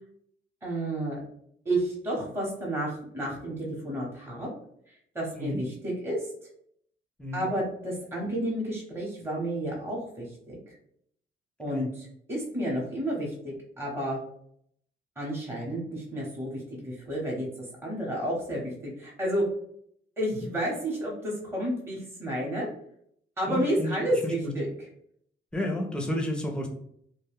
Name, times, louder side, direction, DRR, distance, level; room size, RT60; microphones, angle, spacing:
voice 1, 0.6-1.2 1.6-4.5 4.9-6.5 7.3-10.7 11.6-14.2 15.2-19.4 20.2-22.7 23.4-24.7, right 1 dB, 10° right, -4 dB, 0.8 m, -31 dB
voice 2, 23.5-23.9 24.2-24.5 25.5-26.7, left 1 dB, 5° left, 1 dB, 0.5 m, -31 dB
2.1 x 2.1 x 3.4 m, 0.70 s
cardioid pair, 90°, 20 cm